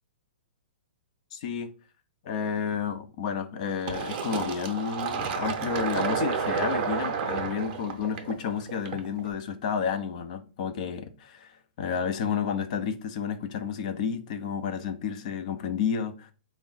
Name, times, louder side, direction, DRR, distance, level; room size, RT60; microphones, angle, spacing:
voice 1, 1.3-1.7 2.2-11.5 11.8-16.3, left 7 dB, 40° left, 0.4 m, -31 dB
Fill (with liquid), 3.9-9.3, right 6 dB, 35° right, 0.6 m, -31 dB
3.6 x 2.1 x 3.8 m
hypercardioid pair, 155°, 6 cm